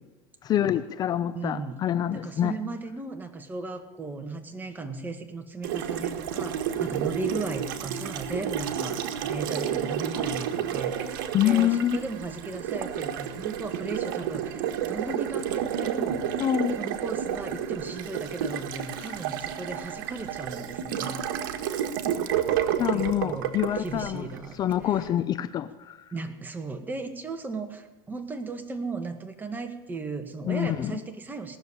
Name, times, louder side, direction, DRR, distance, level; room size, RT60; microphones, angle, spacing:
voice 1, 0.4-2.5 11.3-12.0 16.4-16.8 22.8-24.3 24.6-26.0 30.4-30.9, left 11 dB, 35° left, 13 dB, 0.6 m, -26 dB
voice 2, 1.3-1.8 2.1-16.4 16.7-21.6 22.9-24.6 24.9-25.1 26.1-31.6, right 3 dB, 15° right, 6 dB, 1.8 m, -36 dB
Water tap faucet, 5.6-24.8, right 9 dB, 80° right, 1.5 m, -31 dB
18.5 x 7.1 x 10.0 m, 1.2 s
supercardioid pair, 115°, 11 cm